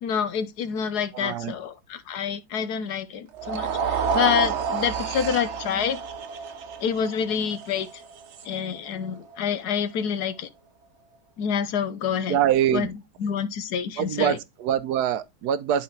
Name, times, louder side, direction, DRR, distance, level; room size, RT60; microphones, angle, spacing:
voice 1, 0.0-6.0 6.8-7.9 8.4-10.5 11.4-12.4 12.7-12.9 13.2-14.4, left 7 dB, 80° left, 1.4 m, -27 dB
voice 2, 1.1-1.5 12.3-12.9 14.0-15.8, right 10 dB, 90° right, 1.2 m, -24 dB
sound 1, 3.3-9.6, right 6 dB, 55° right, 0.9 m, -30 dB
11.0 x 3.9 x 3.2 m
omnidirectional pair, 1.7 m